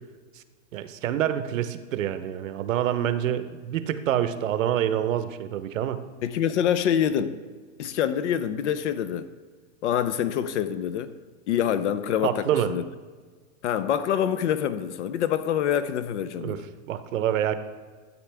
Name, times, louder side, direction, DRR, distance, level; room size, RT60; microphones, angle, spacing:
voice 1, 0.7-6.0 12.2-12.7 16.4-16.6 16.9-17.5, right 10 dB, 75° right, 11 dB, 0.9 m, -26 dB
voice 2, 6.2-7.4 7.8-9.3 9.8-11.1 11.5-12.8 13.6-16.7, left 9 dB, 60° left, 13 dB, 0.7 m, -26 dB
13.5 x 8.4 x 3.4 m, 1.5 s
supercardioid pair, 165°, 39 cm